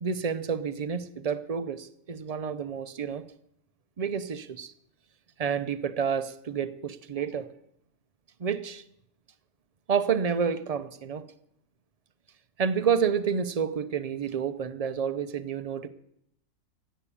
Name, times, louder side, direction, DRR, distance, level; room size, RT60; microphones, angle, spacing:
voice 1, 0.0-3.3 4.0-4.7 5.4-7.5 8.4-8.8 9.9-11.3 12.6-15.9, right 6 dB, 50° right, 13 dB, 0.4 m, -29 dB
15.5 x 8.2 x 8.6 m, 0.75 s
omnidirectional pair, 1.5 m